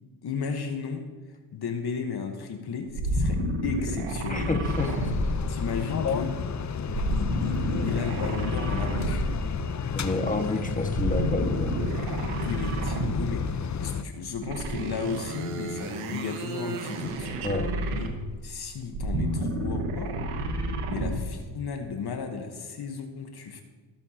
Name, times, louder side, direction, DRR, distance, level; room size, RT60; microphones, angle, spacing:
voice 1, 0.2-1.0 1.5-4.6 5.5-6.4 7.1-9.3 12.4-17.3 18.0-18.1 18.4-20.2 20.9-23.6, left 6 dB, 50° left, 5 dB, 1.3 m, -34 dB
sound 1, 2.9-6.0 6.9-9.6 10.9-13.5 14.4-18.4 18.8-21.3, right 1 dB, 85° right, 1.3 m, -30 dB
voice 2, 4.3-4.9 9.9-11.8 17.4-17.7, left 3 dB, 15° left, 3 dB, 1.6 m, -29 dB
sound 2, 4.6-14.0, left 6 dB, 35° left, 0.7 m, -31 dB
18.0 x 7.1 x 2.9 m, 1.4 s
supercardioid pair, 70°, 49 cm